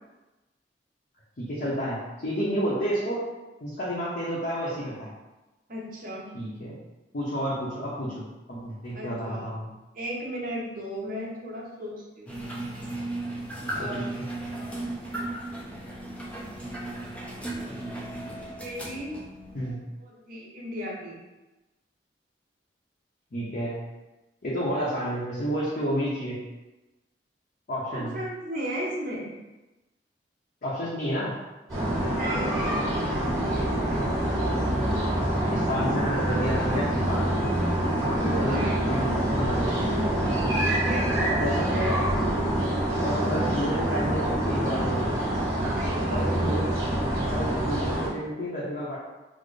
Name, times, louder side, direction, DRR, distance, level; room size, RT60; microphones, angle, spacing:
voice 1, 1.4-3.2 3.6-5.1 6.3-6.8 7.1-9.7 13.8-14.1 19.5-19.8 23.3-23.8 24.4-26.4 27.7-28.2 30.6-31.3 35.5-37.3 38.1-39.9 41.4-42.0 43.0-45.2 46.1-46.7 47.3-49.0, equal, 55° left, -8 dB, 0.7 m, -30 dB
voice 2, 5.7-6.3 8.9-9.5 9.9-12.5 13.7-14.1 14.5-14.8 17.7-18.0 18.6-19.2 19.5-21.2 27.9-29.3 32.0-34.1 38.1-38.9 40.8-42.1 45.6-46.7, equal, 50° right, -3 dB, 0.9 m, -36 dB
sound 1, 12.3-19.7, right 1 dB, 10° left, 0.5 m, -36 dB
sound 2, 31.7-48.1, right 1 dB, 20° right, 1.5 m, -26 dB
4.1 x 2.0 x 3.2 m, 1.1 s
head